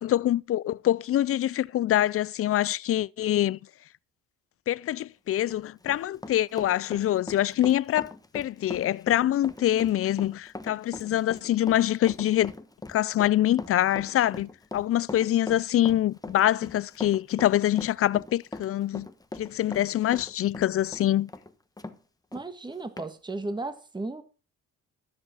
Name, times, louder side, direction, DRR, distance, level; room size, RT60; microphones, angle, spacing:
voice 1, 0.0-3.6 4.7-12.5 12.9-19.1 19.4-21.3, left 13 dB, 50° left, 0.4 m, -25 dB
Run, 5.3-22.0 22.3-22.4 23.0-23.1, left 2 dB, 10° left, 1.2 m, -41 dB
voice 2, 22.3-24.2, right 2 dB, 15° right, 1.5 m, -35 dB
13.0 x 7.2 x 5.6 m
cardioid pair, 90°, 30 cm